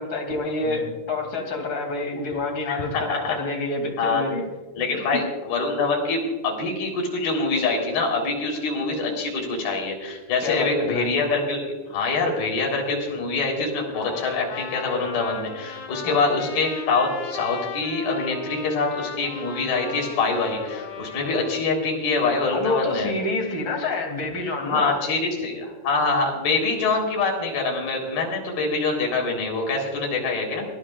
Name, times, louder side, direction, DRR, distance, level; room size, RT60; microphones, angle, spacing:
voice 1, 0.0-4.4 5.1-5.2 10.4-11.1 16.0-16.4 22.5-25.0, left 3 dB, 35° left, 2 dB, 2.4 m, -28 dB
voice 2, 2.7-3.4 4.0-4.2 4.8-23.1 24.7-30.7, left 3 dB, 50° left, 0 dB, 5.2 m, -25 dB
Trumpet, 13.9-21.6, left 6 dB, 70° left, 4.0 m, -36 dB
22.5 x 16.5 x 2.4 m, 1.2 s
omnidirectional pair, 5.9 m